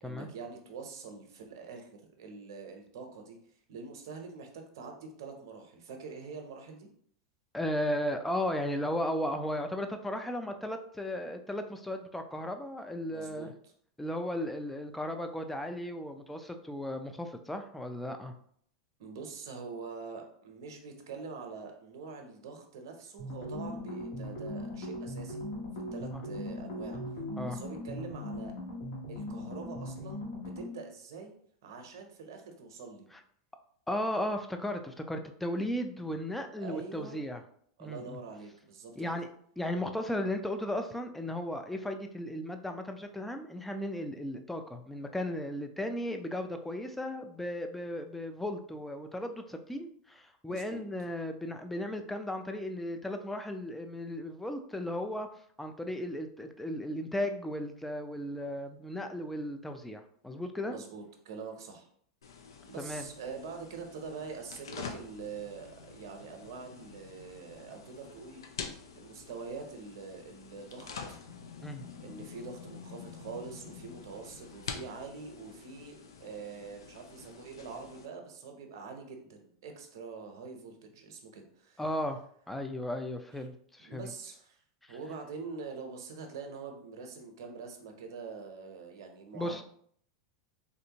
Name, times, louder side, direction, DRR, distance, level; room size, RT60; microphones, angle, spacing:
voice 1, 0.0-3.4 3.7-6.9 13.1-13.7 19.0-25.4 25.9-27.0 27.5-28.5 29.1-31.3 31.6-33.1 36.6-37.2 37.8-38.9 50.5-50.8 60.7-61.9 62.7-68.6 68.9-71.2 72.0-81.8 83.8-84.6 84.9-89.6, right 4 dB, 70° right, 3 dB, 0.7 m, -44 dB
voice 2, 7.5-13.5 14.0-18.3 26.1-26.2 27.4-27.6 33.9-37.4 37.8-38.2 39.0-39.3 39.6-55.3 55.6-60.8 62.8-63.1 71.6-71.8 81.8-84.1 84.9-85.0 89.3-89.6, left 1 dB, 5° left, 6 dB, 0.4 m, -35 dB
sound 1, 23.2-30.8, left 1 dB, 70° left, 1.3 m, -39 dB
sound 2, 62.2-78.1, left 5 dB, 90° left, 0.4 m, -47 dB
3.4 x 2.6 x 2.8 m, 0.63 s
hypercardioid pair, 110°, 2 cm